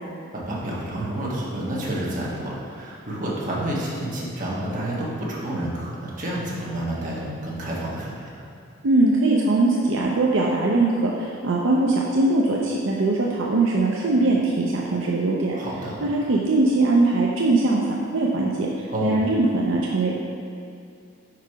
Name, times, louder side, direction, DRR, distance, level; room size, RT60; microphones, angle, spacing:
voice 1, 0.3-8.4 15.5-16.0 18.9-19.2, right 1 dB, 40° right, -6 dB, 1.3 m, -29 dB
voice 2, 8.8-15.6 16.0-17.8 18.1-20.2, right 2 dB, 70° right, -2 dB, 0.5 m, -21 dB
5.0 x 4.7 x 4.7 m, 2.5 s
head